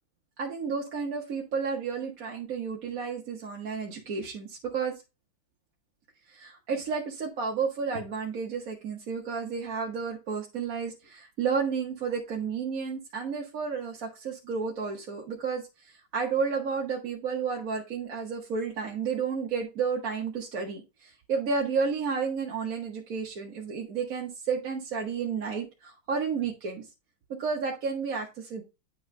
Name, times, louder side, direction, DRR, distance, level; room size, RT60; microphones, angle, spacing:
voice 1, 0.4-5.0 6.3-26.9 27.4-28.6, right 5 dB, 50° right, -1 dB, 1.3 m, -31 dB
10.0 x 3.8 x 3.2 m, 0.27 s
omnidirectional pair, 2.2 m